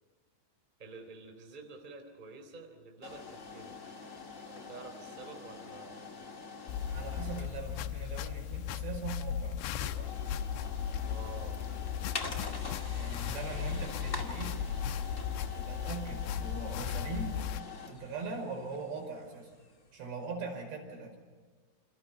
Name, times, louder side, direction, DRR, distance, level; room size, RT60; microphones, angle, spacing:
voice 1, 0.8-4.0 4.4-6.1 11.0-11.6 12.3-13.3, right 3 dB, 10° right, 5 dB, 2.8 m, -49 dB
sound 1, 3.0-19.9, left 4 dB, 35° left, 1.1 m, -45 dB
sound 2, 6.7-17.6, left 8 dB, 75° left, 2.7 m, -36 dB
voice 2, 6.9-9.6 12.9-14.6 15.5-17.4 17.9-19.5 19.9-21.2, right 4 dB, 65° right, 3 dB, 7.3 m, -41 dB
28.5 x 27.5 x 5.7 m, 1.5 s
omnidirectional pair, 5.3 m